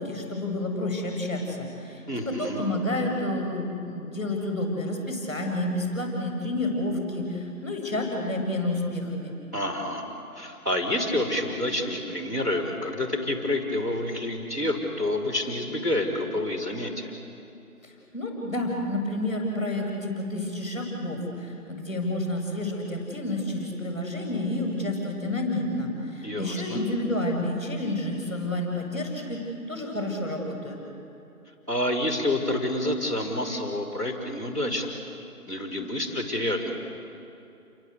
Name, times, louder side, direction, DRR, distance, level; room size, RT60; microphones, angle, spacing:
voice 1, 0.0-9.3 17.8-30.8, left 1 dB, 10° left, -2 dB, 6.4 m, -30 dB
voice 2, 2.1-2.6 9.5-10.1 10.3-17.1 26.2-26.8 31.7-35.0 35.5-36.7, left 1 dB, 10° right, -10 dB, 3.8 m, -28 dB
29.5 x 24.0 x 8.4 m, 2.7 s
figure-of-eight pair, 170°, 46 cm